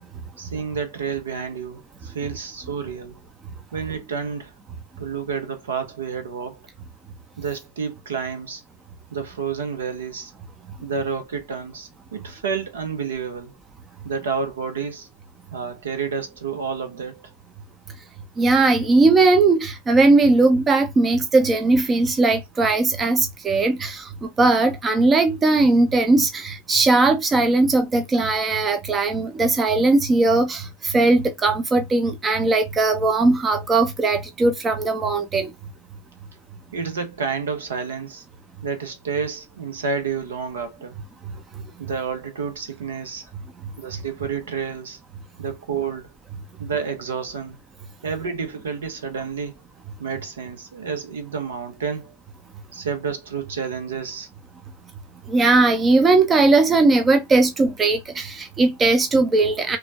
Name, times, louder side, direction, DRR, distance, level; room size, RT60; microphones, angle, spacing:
voice 1, 0.4-3.2 3.7-4.5 5.0-6.7 7.4-8.6 9.1-10.3 10.8-13.5 14.0-15.1 15.5-17.3 36.7-38.2 38.6-41.0 41.8-43.3 43.8-45.0 45.4-46.1 46.6-47.6 48.0-49.5 50.0-52.2 52.7-54.3, right 6 dB, 65° right, 1.2 m, -30 dB
voice 2, 18.4-35.5 55.3-59.8, right 3 dB, 20° right, 0.6 m, -19 dB
5.7 x 2.5 x 2.4 m
figure-of-eight pair, 90°, 0 cm